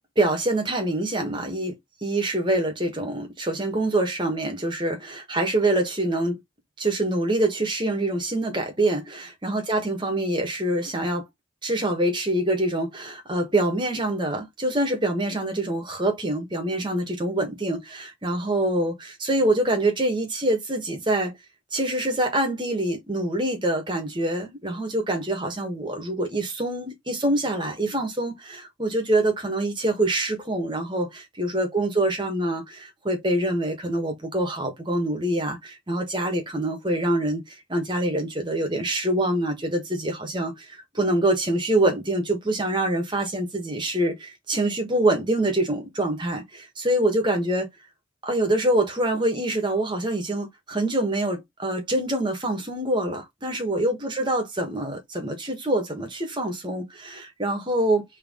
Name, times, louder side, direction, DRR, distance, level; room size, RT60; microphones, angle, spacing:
voice 1, 0.2-1.7 2.0-6.4 6.8-11.2 11.6-21.3 21.7-37.4 37.7-47.7 48.2-58.0, right 1 dB, 25° right, 1.4 m, -25 dB
4.5 x 3.2 x 3.7 m
head